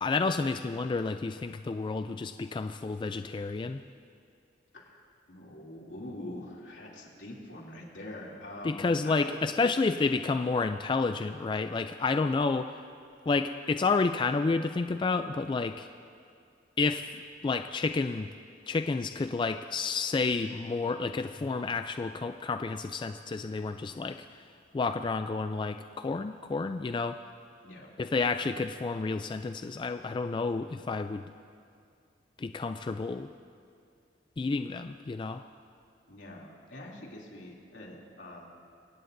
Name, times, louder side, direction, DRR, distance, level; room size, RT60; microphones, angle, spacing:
voice 1, 0.0-3.8 8.6-12.7 13.3-15.9 16.8-18.3 18.7-24.4 24.7-27.2 28.0-31.3 32.4-33.3 34.4-35.4, left 4 dB, 25° left, 9 dB, 0.3 m, -30 dB
voice 2, 4.7-9.4 27.6-27.9 36.1-38.5, left 1 dB, 80° left, -3 dB, 2.8 m, -44 dB
23.5 x 17.5 x 2.6 m, 2.4 s
head